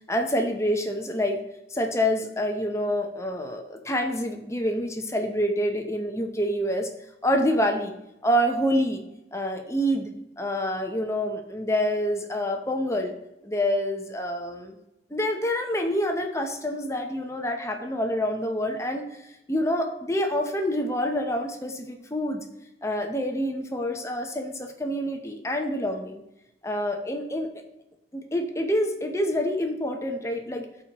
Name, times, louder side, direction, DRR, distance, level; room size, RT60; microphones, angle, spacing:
voice 1, 0.1-1.4 1.7-6.9 7.2-7.9 8.2-9.0 9.3-10.1 10.4-13.1 13.4-14.7 15.1-19.2 19.5-22.4 22.8-26.2 26.6-27.5 28.1-30.6, equal, 15° left, 4 dB, 0.7 m, -27 dB
13.0 x 4.4 x 3.0 m, 0.89 s
head